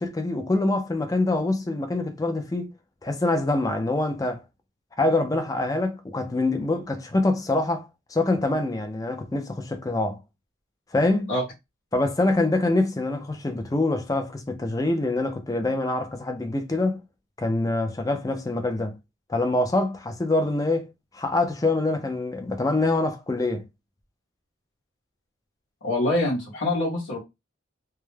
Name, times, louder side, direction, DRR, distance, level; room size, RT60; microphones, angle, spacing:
voice 1, 0.0-2.7 3.0-4.4 5.0-10.2 10.9-11.3 11.9-17.0 17.4-19.0 19.3-20.9 21.1-23.6, left 2 dB, 15° left, 0.3 m, -25 dB
voice 2, 25.8-27.2, left 1 dB, 75° left, 0.8 m, -25 dB
2.3 x 2.0 x 3.1 m
head